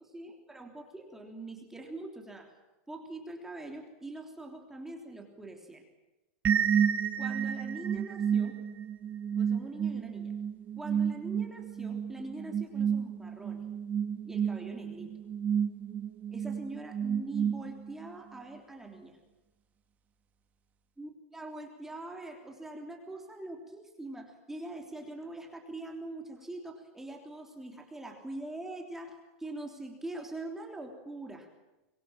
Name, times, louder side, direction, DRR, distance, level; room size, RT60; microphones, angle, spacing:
voice 1, 0.0-2.5 2.9-5.8 7.2-8.6 9.3-10.3 10.8-13.7 14.2-15.1 16.3-19.2 21.0-31.5, right 2 dB, 5° right, 2 dB, 3.4 m, -43 dB
sound 1, 6.4-18.1, right 8 dB, 20° right, 1.8 m, -31 dB
25.0 x 24.0 x 7.6 m, 1.0 s
supercardioid pair, 165°, 8 cm